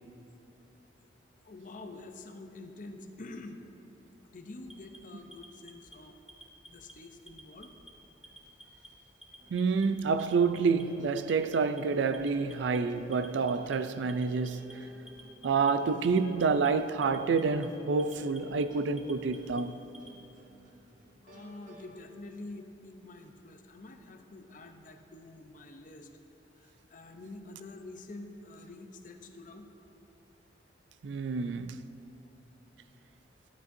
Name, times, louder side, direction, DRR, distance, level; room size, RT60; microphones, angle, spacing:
voice 1, 1.4-3.6 4.3-6.1 6.7-7.7 21.2-26.1 26.6-29.7, left 2 dB, 45° left, 0.6 m, -47 dB
Alarm, 4.6-5.9 6.3-6.9 7.3-7.9 8.2-8.9 9.2-9.9 10.2-10.8 11.2-11.8 12.1-12.8 13.1-13.8 14.1-14.7 15.1-15.7 16.0-16.7 17.0-17.7 18.0-18.6 19.0-20.2, right 1 dB, ahead, 0.7 m, -52 dB
sound 1, 9.4-21.9, left 1 dB, 45° right, 1.3 m, -54 dB
voice 2, 9.5-14.8 15.4-19.8 31.0-31.8, right 4 dB, 75° right, 0.4 m, -28 dB
12.0 x 10.5 x 2.7 m
head